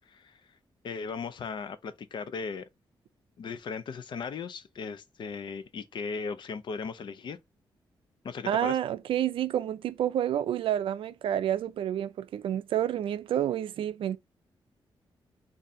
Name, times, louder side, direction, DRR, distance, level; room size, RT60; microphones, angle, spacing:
voice 1, 0.8-2.6 3.4-7.4 8.2-8.8, left 5 dB, 60° left, 0.5 m, -37 dB
voice 2, 8.4-14.2, right 11 dB, 80° right, 0.4 m, -29 dB
3.6 x 2.6 x 4.1 m
cardioid pair, 110°, 9 cm